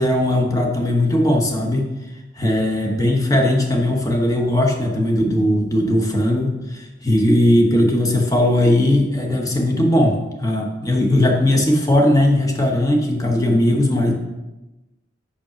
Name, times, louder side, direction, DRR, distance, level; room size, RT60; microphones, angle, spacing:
voice 1, 0.0-1.8 2.4-14.1, left 1 dB, 20° left, 2 dB, 1.0 m, -18 dB
5.7 x 5.2 x 5.7 m, 1.0 s
head